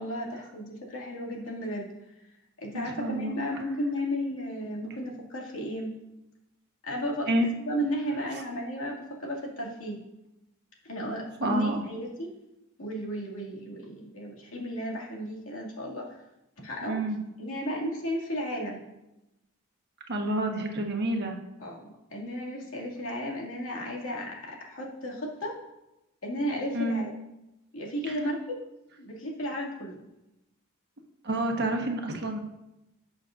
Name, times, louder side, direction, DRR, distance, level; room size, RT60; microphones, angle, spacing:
voice 1, 0.0-1.9 2.6-6.0 6.8-10.0 10.8-12.3 12.8-16.2 16.6-17.0 17.4-18.8 21.6-25.6 26.2-27.1 27.7-28.6 29.0-30.1, equal, 70° left, -2 dB, 2.4 m, -34 dB
voice 2, 2.7-3.4 7.3-7.5 11.4-11.8 16.9-17.2 20.1-21.4 26.7-27.1 31.2-32.4, right 1 dB, 50° right, 3 dB, 1.3 m, -28 dB
17.5 x 6.5 x 2.6 m, 0.93 s
head